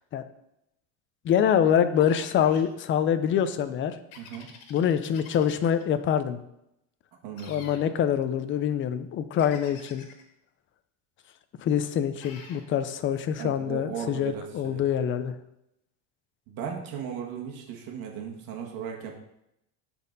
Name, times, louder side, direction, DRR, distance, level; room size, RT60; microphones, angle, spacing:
voice 1, 1.2-4.0 4.7-6.4 7.5-10.1 11.6-15.3, left 9 dB, 30° left, 10 dB, 0.6 m, -25 dB
sound 1, 1.9-2.7 4.1-5.8 7.3-7.8 9.4-10.2 12.2-12.6, left 6 dB, 85° left, 1.8 m, -47 dB
voice 2, 4.2-4.5 7.2-7.7 13.4-14.8 16.5-19.1, right 7 dB, 60° right, 0 dB, 1.6 m, -36 dB
12.5 x 4.3 x 4.0 m, 0.82 s
cardioid pair, 145°, 39 cm